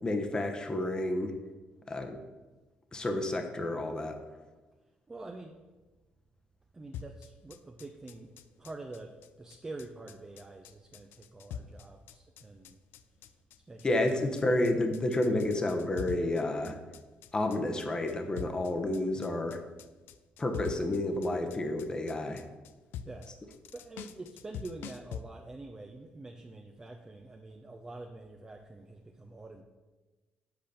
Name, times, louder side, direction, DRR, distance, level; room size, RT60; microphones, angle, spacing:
voice 1, 0.0-1.3 1.9-2.2 2.9-4.2 13.8-16.8 17.3-19.6 20.4-22.4, left 1 dB, 20° left, 5 dB, 1.0 m, -30 dB
voice 2, 5.1-5.6 6.7-8.3 8.6-12.8 13.7-13.9 23.0-23.3 23.7-29.6, right 2 dB, 20° right, 3 dB, 0.7 m, -46 dB
sound 1, 6.9-25.2, left 8 dB, 85° left, 0.5 m, -45 dB
7.9 x 5.1 x 6.9 m, 1.2 s
cardioid pair, 110°, 4 cm